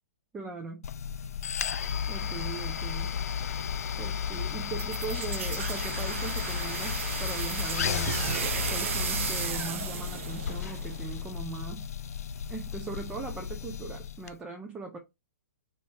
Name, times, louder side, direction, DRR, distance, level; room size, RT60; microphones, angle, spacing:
voice 1, 0.3-0.9 2.1-3.1 4.0-11.9 12.5-15.0, right 4 dB, 10° right, 0.5 m, -40 dB
sound 1, 0.8-14.3, left 8 dB, 85° left, 0.4 m, -33 dB
sound 2, 4.8-11.4, right 9 dB, 60° right, 0.5 m, -35 dB
4.1 x 2.9 x 3.3 m
hypercardioid pair, 150°, 8 cm